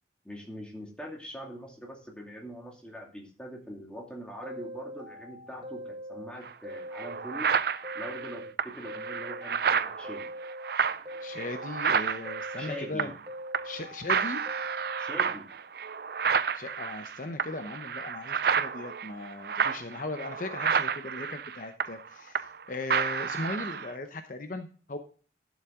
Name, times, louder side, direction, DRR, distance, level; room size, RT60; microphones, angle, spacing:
voice 1, 0.2-7.5 7.9-10.3 12.6-13.1 15.0-15.5, equal, 5° left, 0 dB, 2.4 m, -42 dB
sound 1, 4.4-6.3 6.6-8.5 8.8-10.7 11.1-12.9 13.3-15.1, equal, 30° right, 1.1 m, -42 dB
sound 2, 6.4-6.5 6.9-13.3 13.5-13.8 14.1-22.6 22.9-23.9, right 6 dB, 55° right, 0.5 m, -30 dB
voice 2, 11.2-13.1 13.6-14.4 16.5-25.0, left 2 dB, 45° left, 7 dB, 0.8 m, -38 dB
12.0 x 7.3 x 3.7 m, 0.40 s
head